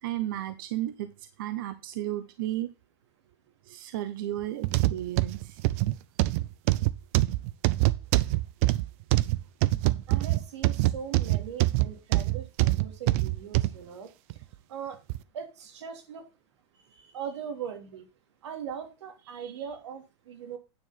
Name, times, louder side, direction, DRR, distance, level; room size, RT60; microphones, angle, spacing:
voice 1, 0.0-2.7 3.6-5.6 19.3-19.7, right 13 dB, 50° right, 11 dB, 0.7 m, -34 dB
sound 1, 4.6-13.8 14.3-14.4 15.1-15.2, right 18 dB, 30° right, 0.4 m, -24 dB
voice 2, 10.1-14.1 14.7-15.0 15.3-16.2 16.8-18.1 18.4-20.6, right 7 dB, 90° right, 5 dB, 2.8 m, -40 dB
9.5 x 4.8 x 5.7 m, 0.29 s
supercardioid pair, 180°, 14 cm